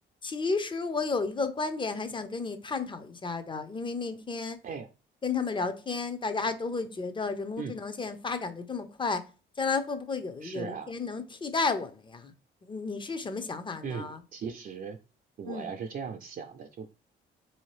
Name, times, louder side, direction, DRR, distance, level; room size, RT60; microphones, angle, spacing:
voice 1, 0.2-4.6 5.2-9.3 9.6-12.3 12.6-14.2 15.4-15.7, left 4 dB, 25° left, 0.6 m, -32 dB
voice 2, 10.4-10.9 13.8-15.0 15.4-16.9, right 6 dB, 45° right, 0.4 m, -38 dB
3.5 x 2.8 x 3.1 m
cardioid pair, 90°, 20 cm